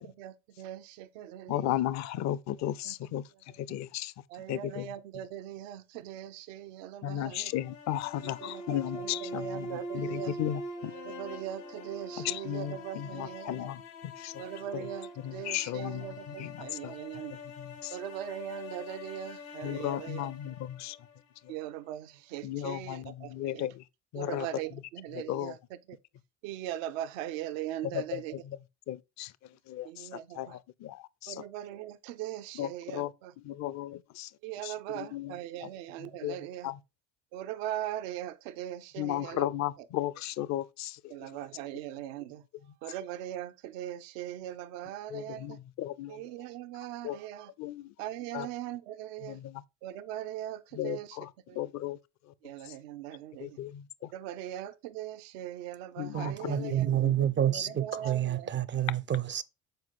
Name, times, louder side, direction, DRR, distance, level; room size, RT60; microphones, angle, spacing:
voice 1, 0.0-1.7 2.9-3.0 4.3-7.5 8.4-10.4 11.0-13.7 14.4-17.4 17.9-20.2 21.5-23.6 24.2-25.6 25.9-26.0 26.4-28.3 29.8-30.5 31.3-33.3 34.4-36.7 37.3-39.5 41.1-42.4 42.8-45.6 46.1-47.5 48.0-49.4 49.8-51.1 51.5-51.6 52.4-53.6 54.1-56.9 57.5-58.5, right 12 dB, 80° right, 0.7 m, -40 dB
voice 2, 1.5-5.2 7.0-10.9 12.2-14.4 14.7-14.9 15.2-17.0 17.3-18.0 19.6-21.0 21.4-21.5 22.4-23.9 24.1-24.8 25.1-25.6 27.8-31.4 32.5-35.7 36.0-36.8 39.0-41.4 45.1-46.3 47.0-47.2 47.6-47.9 48.3-48.5 49.2-49.6 50.7-52.3 52.6-52.8 53.4-54.1 56.0-57.3 58.0-58.1, left 12 dB, 45° left, 0.5 m, -36 dB
sound 1, 7.4-21.6, left 1 dB, 90° left, 1.5 m, -43 dB
voice 3, 56.1-59.4, right 11 dB, 30° right, 0.4 m, -29 dB
8.0 x 4.4 x 3.7 m
hypercardioid pair, 70°, 38 cm